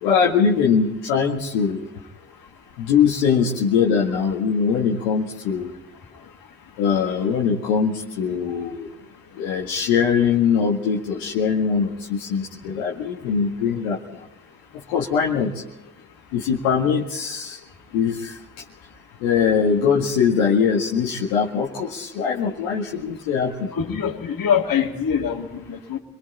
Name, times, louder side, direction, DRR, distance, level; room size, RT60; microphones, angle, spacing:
voice 1, 0.0-1.8 2.8-5.7 6.8-8.9 9.3-14.2 14.7-15.6 16.3-17.6 17.9-18.4 19.2-23.7, left 6 dB, 85° left, -3 dB, 2.0 m, -22 dB
voice 2, 23.7-26.0, left 7 dB, 55° left, 3 dB, 3.0 m, -24 dB
28.0 x 22.5 x 4.3 m, 0.87 s
hypercardioid pair, 45°, 40 cm